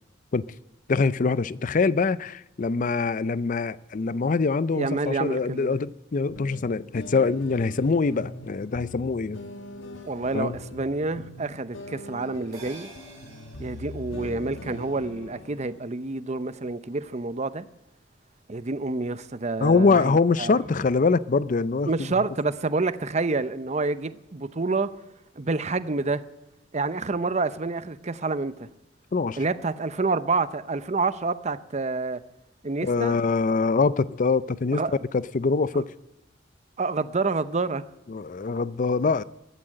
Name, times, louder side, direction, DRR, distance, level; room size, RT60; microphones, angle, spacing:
voice 1, 0.9-9.4 10.3-10.6 19.6-21.9 29.1-29.4 32.8-34.8 35.1-35.8 38.1-39.2, left 4 dB, 40° left, 0.4 m, -24 dB
voice 2, 4.7-5.7 10.0-12.9 13.6-17.7 18.5-20.6 21.9-24.9 25.4-26.2 26.7-28.7 29.4-32.2 32.6-33.2 34.7-34.9 35.7-35.8 36.8-37.8, right 3 dB, 35° right, 0.7 m, -28 dB
sound 1, 6.3-15.8, left 2 dB, 80° left, 1.4 m, -42 dB
sound 2, 12.5-17.2 17.6-17.7, right 2 dB, 20° right, 5.0 m, -52 dB
14.5 x 12.5 x 7.7 m
head